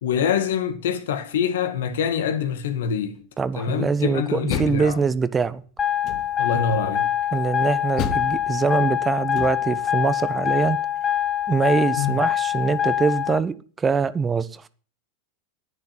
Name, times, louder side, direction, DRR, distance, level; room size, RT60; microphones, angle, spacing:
voice 1, 0.0-3.2 3.6-5.0 6.4-7.1 12.0-12.2, left 7 dB, 75° left, 2.0 m, -25 dB
voice 2, 3.4-5.6 7.3-10.8 11.5-14.6, right 5 dB, 20° right, 1.1 m, -23 dB
Door, 4.2-5.5 6.0-6.6 8.0-9.9, left 6 dB, 45° left, 1.7 m, -33 dB
sound 1, 5.8-13.4, left 10 dB, 25° left, 1.1 m, -24 dB
11.0 x 9.7 x 7.4 m
hypercardioid pair, 95°, 0 cm